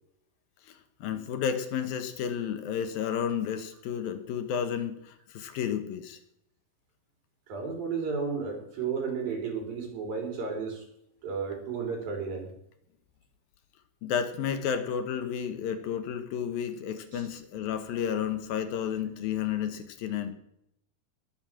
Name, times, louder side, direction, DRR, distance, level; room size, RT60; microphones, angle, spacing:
voice 1, 1.0-6.2 14.0-20.3, left 8 dB, 70° left, 9 dB, 2.8 m, -31 dB
voice 2, 7.5-10.8 11.2-12.5 17.1-17.2, right 5 dB, 65° right, 2 dB, 5.4 m, -33 dB
20.5 x 7.3 x 7.5 m, 0.75 s
omnidirectional pair, 4.5 m